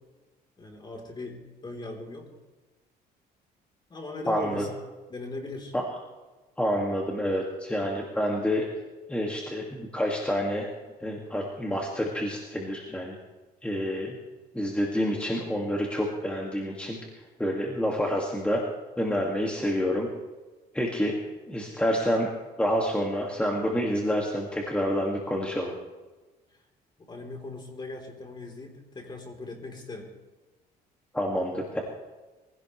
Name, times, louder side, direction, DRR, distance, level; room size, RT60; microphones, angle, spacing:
voice 1, 0.6-2.3 3.9-4.8 5.1-5.8 27.0-30.1, left 2 dB, 25° left, 2 dB, 3.8 m, -39 dB
voice 2, 4.3-4.6 5.7-5.8 6.6-8.6 9.1-10.7 11.0-13.2 13.6-14.2 14.5-17.0 17.4-18.6 19.0-20.1 20.7-21.1 21.5-22.3 22.6-25.7 31.1-31.8, equal, 5° left, -1 dB, 2.2 m, -28 dB
23.5 x 16.5 x 3.3 m, 1.2 s
cardioid pair, 110°, 17 cm